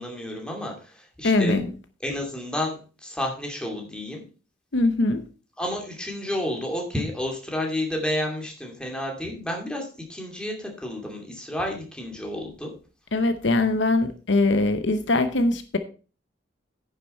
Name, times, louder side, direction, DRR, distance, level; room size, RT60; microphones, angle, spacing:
voice 1, 0.0-1.6 2.0-4.2 5.6-12.7, left 1 dB, 5° left, 0 dB, 2.5 m, -31 dB
voice 2, 1.2-1.7 4.7-5.3 13.1-15.8, left 2 dB, 65° left, 9 dB, 0.9 m, -22 dB
9.9 x 6.8 x 4.3 m, 0.36 s
head